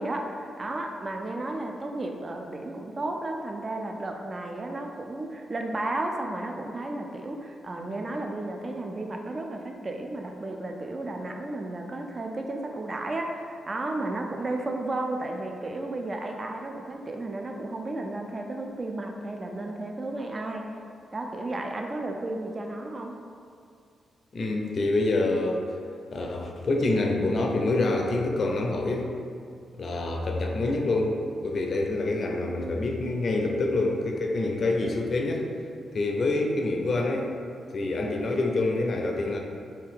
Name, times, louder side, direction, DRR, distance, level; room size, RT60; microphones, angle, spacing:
voice 1, 0.0-20.7 21.1-23.2, right 2 dB, 40° right, 2 dB, 0.3 m, -33 dB
voice 2, 24.3-25.7 26.1-29.1 29.8-35.4 35.9-37.3 37.7-39.4, left 2 dB, 55° left, 1 dB, 0.4 m, -26 dB
2.7 x 2.3 x 3.5 m, 2.4 s
supercardioid pair, 50°, 0 cm